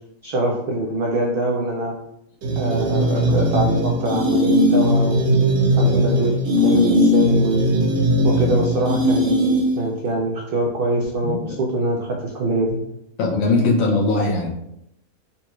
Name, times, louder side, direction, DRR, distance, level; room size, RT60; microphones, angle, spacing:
voice 1, 0.2-1.9 2.6-5.5 5.8-7.7 8.2-9.5 9.8-12.8, right 1 dB, 85° right, -1 dB, 0.5 m, -24 dB
sound 1, 2.4-9.9, equal, 60° right, 0.9 m, -18 dB
voice 2, 11.2-11.5 13.2-14.5, left 3 dB, 70° left, -1 dB, 1.1 m, -20 dB
3.9 x 2.4 x 2.9 m, 0.80 s
omnidirectional pair, 1.5 m